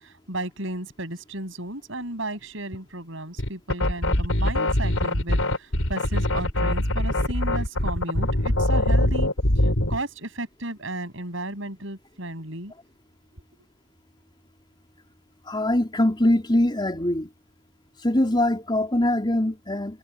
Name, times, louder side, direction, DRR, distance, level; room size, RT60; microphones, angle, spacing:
voice 1, 0.0-9.3 9.9-12.7, right 2 dB, 65° right, 7.9 m, -34 dB
sound 1, 3.4-10.0, left 1 dB, 85° left, 3.5 m, -23 dB
voice 2, 15.4-17.3 18.0-20.0, left 1 dB, 20° left, 4.0 m, -23 dB
head